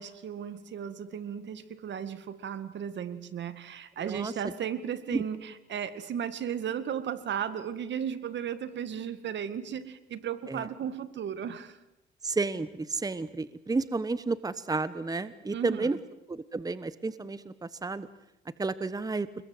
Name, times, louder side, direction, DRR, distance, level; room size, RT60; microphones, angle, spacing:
voice 1, 0.0-11.8 15.5-15.9, right 8 dB, 65° right, 12 dB, 2.2 m, -35 dB
voice 2, 4.0-4.3 5.1-5.2 10.5-10.7 12.2-16.0 16.3-18.1 18.6-19.3, right 3 dB, 20° right, 14 dB, 1.1 m, -31 dB
29.5 x 22.0 x 8.0 m, 0.87 s
cardioid pair, 90°, 20 cm